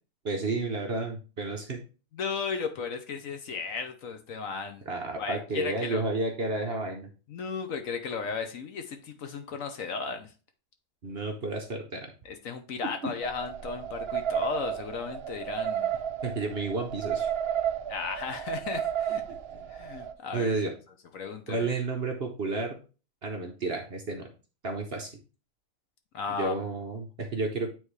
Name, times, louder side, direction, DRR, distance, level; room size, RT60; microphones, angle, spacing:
voice 1, 0.2-1.8 4.9-7.1 11.0-12.1 12.8-13.1 16.2-17.3 19.3-19.7 20.3-20.7 21.5-22.8 23.2-24.3 24.6-25.1 26.4-27.7, right 3 dB, 45° right, 2 dB, 1.0 m, -31 dB
voice 2, 2.1-4.8 5.2-6.0 7.3-10.3 12.2-15.9 17.9-19.2 19.7-20.5 21.1-21.7 26.1-26.5, left 5 dB, 60° left, 6 dB, 1.1 m, -35 dB
sound 1, 13.2-20.1, right 9 dB, 60° right, 0.6 m, -32 dB
9.2 x 3.7 x 3.2 m, 0.33 s
omnidirectional pair, 1.7 m